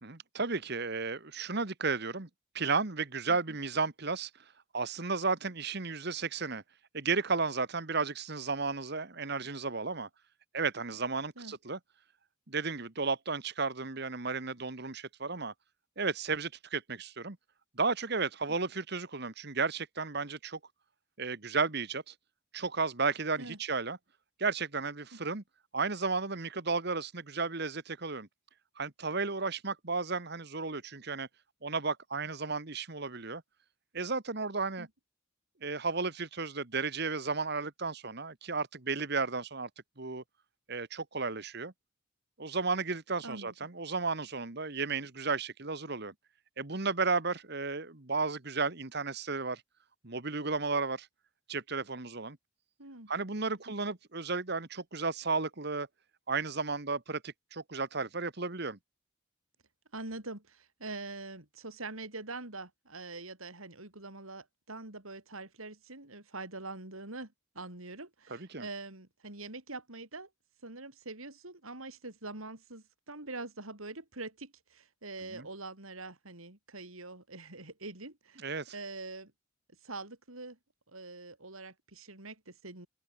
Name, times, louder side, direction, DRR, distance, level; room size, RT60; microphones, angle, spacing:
voice 1, 0.0-2.3 2.5-4.3 4.7-6.6 6.9-10.1 10.5-11.8 12.5-15.5 16.0-17.4 17.8-20.6 21.2-22.1 22.5-24.0 24.4-25.4 25.7-28.3 28.8-31.3 31.6-33.4 33.9-34.9 35.6-39.7 40.0-40.2 40.7-41.7 42.4-46.1 46.6-49.6 50.0-51.1 51.5-52.4 53.1-55.9 56.3-58.8 68.3-68.7 75.2-75.5 78.4-78.7, right 4 dB, 50° right, 1.6 m, -33 dB
voice 2, 43.2-43.5 52.8-53.1 53.5-53.7 59.9-70.3 70.6-79.3 79.8-80.6 80.9-82.9, right 3 dB, 80° right, 5.0 m, -44 dB
open air
head